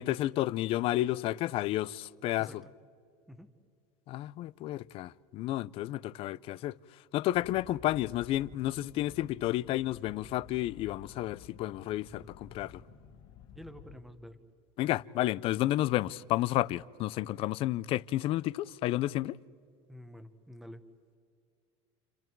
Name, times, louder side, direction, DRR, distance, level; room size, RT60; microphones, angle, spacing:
voice 1, 0.0-2.6 4.1-6.8 7.1-12.8 14.8-19.4, left 15 dB, 40° left, 0.5 m, -31 dB
voice 2, 2.4-2.7 3.3-3.5 13.5-14.4 19.9-20.8, equal, ahead, 1.1 m, -49 dB
sound 1, 7.3-14.0, left 7 dB, 60° left, 2.4 m, -53 dB
30.0 x 29.5 x 4.6 m
cardioid pair, 155°, 15 cm